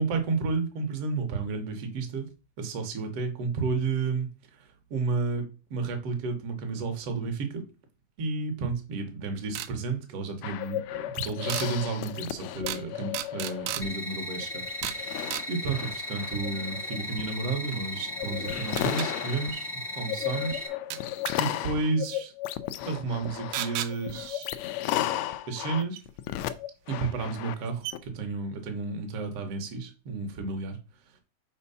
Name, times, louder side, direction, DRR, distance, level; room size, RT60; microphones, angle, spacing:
voice 1, 0.0-2.3 2.6-7.6 8.2-20.7 21.4-22.3 22.8-24.5 25.5-26.0 26.9-30.8 31.1-31.2, right 4 dB, 60° right, 4 dB, 1.9 m, -32 dB
sound 1, 9.5-9.7 11.5-11.7 12.7-12.9 13.1-13.9 14.8-15.0 15.3-15.5 17.7-17.8 18.8-19.1 20.9-21.4 23.5-23.9 26.0-26.1 27.0-27.1 27.5-27.6 27.8-28.0, right 13 dB, 80° right, 2.0 m, -33 dB
sound 2, 10.4-13.9 14.3-28.0, left 13 dB, 80° left, 1.6 m, -35 dB
sound 3, 13.8-20.7, left 1 dB, 60° left, 0.4 m, -37 dB
5.5 x 4.4 x 5.5 m, 0.32 s
omnidirectional pair, 3.6 m